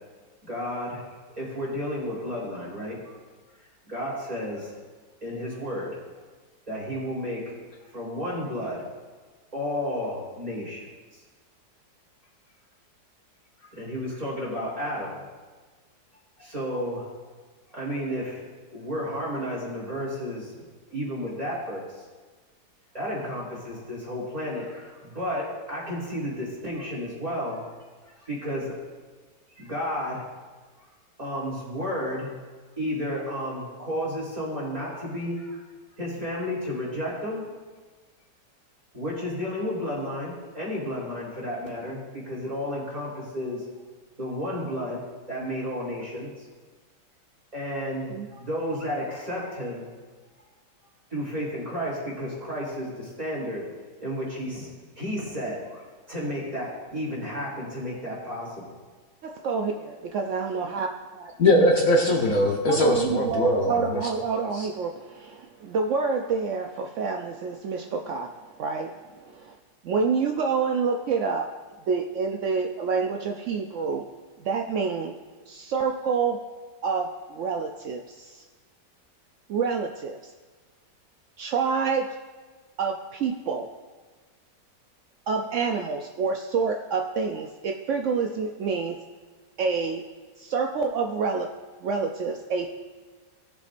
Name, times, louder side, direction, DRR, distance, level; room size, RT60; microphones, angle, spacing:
voice 1, 0.4-3.2 3.9-4.7 5.2-5.9 6.7-8.8 9.5-10.9 13.6-15.1 16.4-17.1 17.7-18.4 18.7-20.5 20.9-21.9 22.9-27.7 28.1-28.7 29.5-30.2 31.2-32.3 32.8-35.6 36.0-37.5 38.9-43.6 44.2-46.4 47.5-49.9 51.1-53.6 54.0-54.7 55.0-58.8, equal, 20° right, -6 dB, 3.7 m, -32 dB
voice 2, 59.2-61.3 62.4-69.5 69.8-71.5 71.9-74.0 74.4-75.1 75.5-76.4 76.8-78.4 79.5-80.2 81.4-82.1 82.8-83.7 85.3-89.0 89.6-90.0 90.4-91.5 91.8-92.8, right 5 dB, 75° right, 3 dB, 0.7 m, -28 dB
voice 3, 61.4-64.0 64.6-64.7, left 1 dB, 55° left, -1 dB, 1.3 m, -21 dB
17.5 x 7.3 x 2.6 m, 1.4 s
omnidirectional pair, 1.9 m